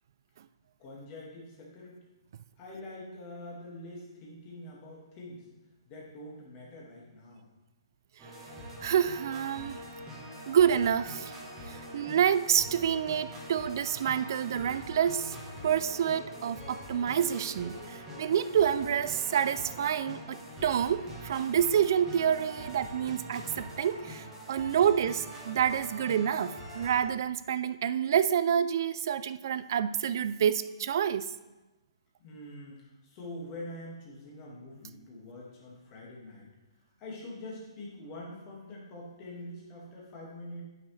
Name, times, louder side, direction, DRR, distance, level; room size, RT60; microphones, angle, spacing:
voice 1, 0.8-2.0 2.6-5.5 5.9-7.5 32.2-36.5 37.0-40.6, left 1 dB, 25° left, -4 dB, 1.9 m, -45 dB
sound 1, 8.2-27.0, equal, 10° right, 1.3 m, -44 dB
voice 2, 8.8-9.8 10.5-11.3 11.6-15.4 15.6-31.3, right 9 dB, 45° right, 14 dB, 0.3 m, -28 dB
9.9 x 5.9 x 3.3 m, 1.1 s
hypercardioid pair, 170°, 3 cm